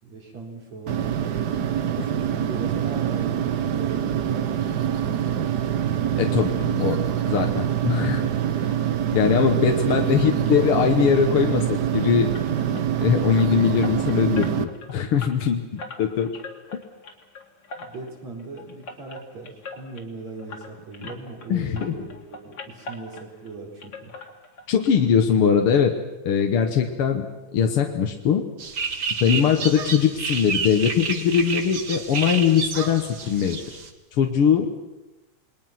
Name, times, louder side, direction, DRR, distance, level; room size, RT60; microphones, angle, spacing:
voice 1, 0.0-1.3 2.2-5.4 9.3-10.0 17.8-24.1 29.2-29.6, right 3 dB, 65° right, 0 dB, 5.8 m, -39 dB
sound 1, 0.9-14.6, right 9 dB, 90° right, 0.8 m, -25 dB
voice 2, 6.2-7.0 7.3-8.3 9.1-12.3 12.7-16.4 16.7-16.8 21.0-21.1 21.5-22.0 24.7-25.9 26.2-27.3 27.5-28.5 29.2-33.8 34.1-34.8, left 7 dB, 55° left, 3 dB, 1.9 m, -21 dB
sound 2, 12.3-21.5 21.7-23.5 23.8-24.9 25.2-25.3 25.7-25.8 26.2-26.3, left 3 dB, 40° left, 2.8 m, -41 dB
sound 3, 28.6-33.9, right 5 dB, 40° right, 1.8 m, -30 dB
28.5 x 21.0 x 6.0 m, 1.0 s
omnidirectional pair, 3.3 m